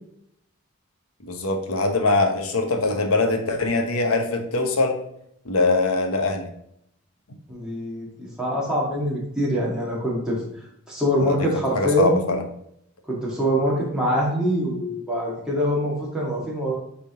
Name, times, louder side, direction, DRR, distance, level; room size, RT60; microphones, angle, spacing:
voice 1, 1.2-5.0 5.4-6.5 11.2-11.3 11.7-12.4, left 3 dB, 85° left, 5 dB, 1.1 m, -22 dB
voice 2, 7.5-10.4 10.9-12.2 13.1-16.7, equal, 5° right, -6 dB, 2.1 m, -24 dB
8.7 x 3.8 x 3.7 m, 0.74 s
head